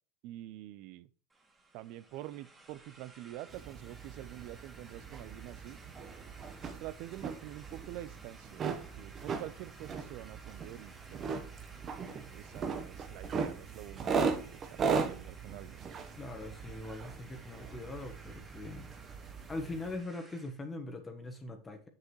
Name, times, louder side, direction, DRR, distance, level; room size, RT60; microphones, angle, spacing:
voice 1, 0.2-1.1 1.7-5.8 6.8-11.5 12.3-15.9, right 14 dB, 60° right, 0.6 m, -47 dB
sound 1, 1.3-20.6, right 2 dB, 15° right, 2.1 m, -57 dB
sound 2, 3.5-20.0, right 5 dB, 35° right, 1.0 m, -38 dB
voice 2, 16.2-18.9 19.5-21.9, left 2 dB, 20° left, 1.2 m, -42 dB
7.4 x 6.6 x 3.1 m
supercardioid pair, 115°, 0 cm